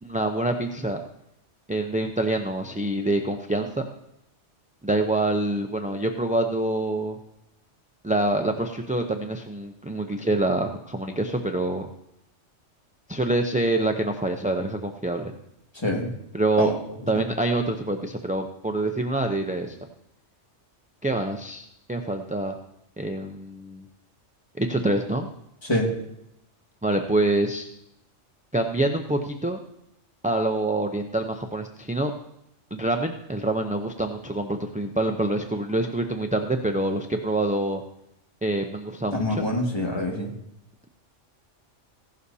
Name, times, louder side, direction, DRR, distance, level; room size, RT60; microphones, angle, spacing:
voice 1, 0.0-1.0 1.7-3.9 4.8-7.2 8.0-11.9 13.1-15.3 16.3-16.7 17.1-19.8 21.0-22.6 23.0-23.8 24.6-25.3 26.8-27.7 28.5-29.6 30.2-32.1 32.7-37.8 38.4-39.4, right 2 dB, 10° right, 4 dB, 0.4 m, -26 dB
voice 2, 39.1-40.3, left 1 dB, 20° left, -1 dB, 2.2 m, -25 dB
16.0 x 11.5 x 2.8 m, 0.79 s
omnidirectional pair, 1.3 m